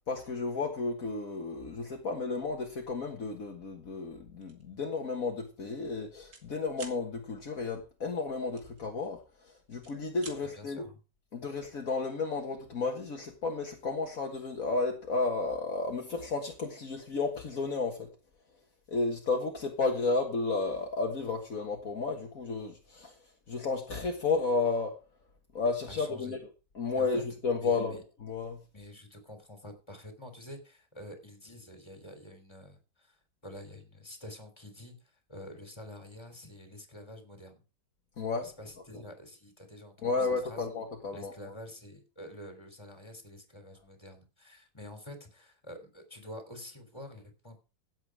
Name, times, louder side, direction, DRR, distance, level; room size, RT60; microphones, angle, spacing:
voice 1, 0.1-10.9 11.3-18.1 18.9-23.1 23.5-25.0 25.5-26.4 26.8-28.6 38.2-38.5 40.0-41.3, left 3 dB, 60° left, 2.0 m, -32 dB
sound 1, 4.4-4.7 5.1-5.3 5.5-6.5 6.7-7.0 8.6-9.4 9.7-10.4, right 4 dB, 65° right, 2.8 m, -48 dB
voice 2, 10.4-10.9 25.9-26.4 27.0-27.2 27.6-28.0 28.7-33.2 33.4-34.9 35.3-37.6 38.4-40.7 41.1-47.6, left 1 dB, 15° left, 3.5 m, -47 dB
16.0 x 8.1 x 4.9 m
omnidirectional pair, 1.7 m